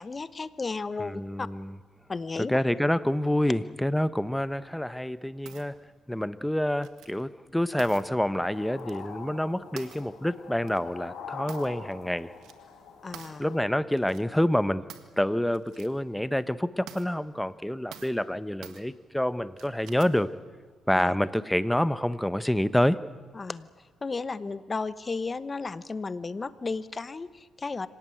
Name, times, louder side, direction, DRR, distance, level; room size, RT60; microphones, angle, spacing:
voice 1, 0.0-1.5 2.1-2.6 13.0-13.6 20.9-21.2 23.3-27.9, left 4 dB, 30° left, 15 dB, 1.0 m, -34 dB
voice 2, 1.0-1.7 2.5-5.8 6.1-12.3 13.4-14.8 15.2-20.3 20.9-23.0, left 1 dB, 5° left, 14 dB, 0.9 m, -27 dB
sound 1, 5.5-5.7 6.8-7.2 7.8-8.0 8.8-9.1 9.8-10.1 10.7-10.8 11.5-11.9 12.2-12.5 13.1-13.4 13.9-14.2 14.9-15.2 15.5-15.9 16.3-16.4 16.9-17.1 17.9-18.2 18.6-18.8 19.6-20.2, right 10 dB, 85° right, 1.7 m, -47 dB
sound 2, 8.4-13.6, left 5 dB, 75° left, 4.4 m, -44 dB
26.0 x 17.5 x 9.2 m, 1.5 s
cardioid pair, 90°, 0 cm